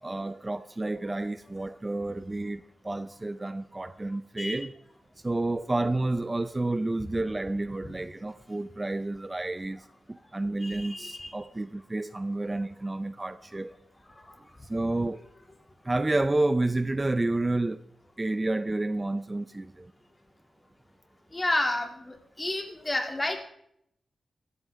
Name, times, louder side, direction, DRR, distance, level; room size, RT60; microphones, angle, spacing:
voice 1, 0.0-4.7 5.2-13.7 14.7-15.2 15.8-17.8 18.2-19.9, right 2 dB, 25° right, 0.5 m, -30 dB
voice 2, 10.6-11.3 21.3-23.4, left 1 dB, 25° left, 2.6 m, -30 dB
16.0 x 14.0 x 3.6 m
cardioid pair, 65°, 0 cm